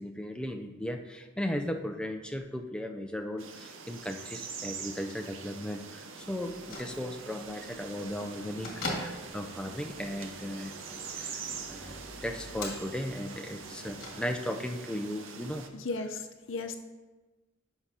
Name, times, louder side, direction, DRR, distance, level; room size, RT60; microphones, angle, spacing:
voice 1, 0.0-10.7 11.1-11.4 11.7-15.7, equal, 5° left, 4 dB, 0.4 m, -36 dB
sound 1, 3.4-15.7, right 5 dB, 85° right, 0.7 m, -44 dB
Bell / Microwave oven, 6.4-14.7, left 1 dB, 50° left, 1.8 m, -44 dB
voice 2, 15.7-16.8, left 3 dB, 70° left, 6 dB, 0.7 m, -35 dB
11.0 x 5.9 x 2.8 m, 1.2 s
head